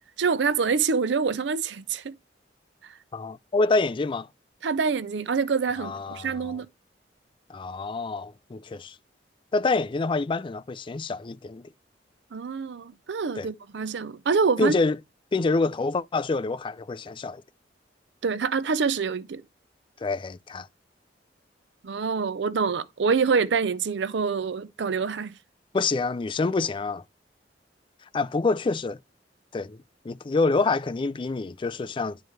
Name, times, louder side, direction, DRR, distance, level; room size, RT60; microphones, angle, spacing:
voice 1, 0.2-2.1 4.6-6.7 12.3-14.7 18.2-19.4 21.8-25.3, right 5 dB, 70° right, 0.5 m, -26 dB
voice 2, 3.1-4.3 5.8-6.6 7.5-9.0 9.5-11.7 13.4-13.5 14.6-15.0 15.3-17.4 20.0-20.7 25.7-27.0 28.1-29.0 29.5-32.2, left 3 dB, 30° left, 0.4 m, -27 dB
10.5 x 4.7 x 3.2 m
head